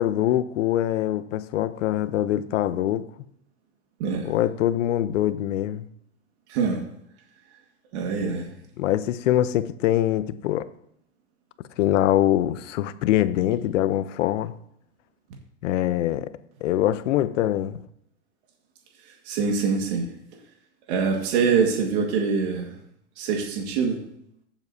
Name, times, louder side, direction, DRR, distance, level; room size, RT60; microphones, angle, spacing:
voice 1, 0.0-3.1 4.2-5.8 8.8-10.7 11.8-14.5 15.6-16.3 16.6-17.8, left 12 dB, 85° left, 0.7 m, -23 dB
voice 2, 4.0-4.3 6.5-6.8 7.9-8.5 19.1-20.1 20.9-22.7 23.2-24.0, right 5 dB, 65° right, 1.9 m, -24 dB
15.0 x 7.1 x 2.7 m
supercardioid pair, 160°, 36 cm